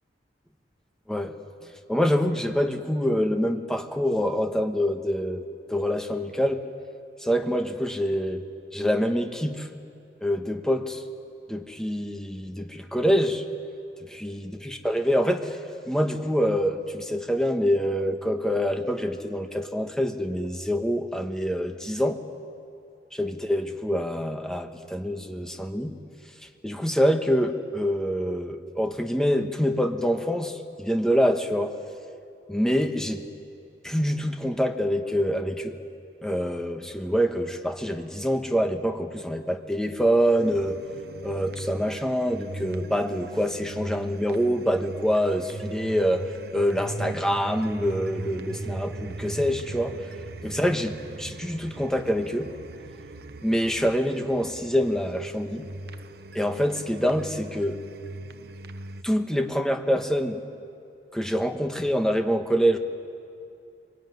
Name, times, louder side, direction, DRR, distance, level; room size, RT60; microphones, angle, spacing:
voice 1, 1.9-5.4 5.7-6.6 7.2-8.4 8.7-9.7 10.2-11.0 11.5-13.4 14.2-15.6 15.9-22.2 23.2-26.0 26.6-31.8 32.5-33.2 33.8-35.8 36.2-40.8 41.2-46.2 46.5-50.0 50.4-52.5 53.4-55.6 56.3-57.8 59.0-60.4 61.1-62.8, equal, 5° left, 5 dB, 1.3 m, -25 dB
sound 1, 40.4-59.0, right 2 dB, 60° right, 0.9 m, -39 dB
24.0 x 23.0 x 9.5 m, 2.5 s
head